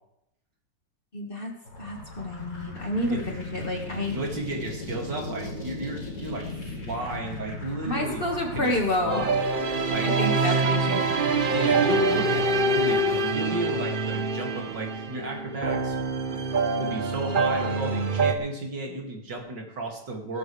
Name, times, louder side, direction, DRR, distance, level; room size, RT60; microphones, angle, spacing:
voice 1, 1.1-4.2 7.8-9.2 10.0-11.0, left 1 dB, 30° left, 1 dB, 2.0 m, -29 dB
sound 1, 1.6-13.3, left 2 dB, 75° left, 5.4 m, -38 dB
voice 2, 3.1-3.4 4.1-8.3 8.5-9.4 9.9-10.6 11.5-16.0 16.3-16.4 16.8-20.4, right 2 dB, 75° right, 0 dB, 3.2 m, -33 dB
sound 2, 9.1-18.4, right 3 dB, 40° right, 0.8 m, -25 dB
17.0 x 13.0 x 3.4 m, 0.82 s
omnidirectional pair, 2.0 m